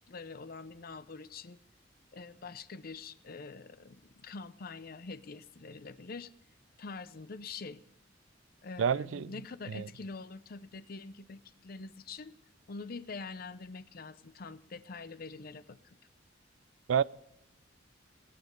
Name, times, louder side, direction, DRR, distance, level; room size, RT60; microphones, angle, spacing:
voice 1, 0.1-1.6 2.1-6.3 6.8-7.8 8.6-12.4 12.7-16.0, left 4 dB, 50° left, 0.6 m, -45 dB
voice 2, 8.8-9.3 9.7-9.9 16.9-17.0, right 7 dB, 80° right, 0.4 m, -28 dB
18.0 x 9.5 x 5.3 m
head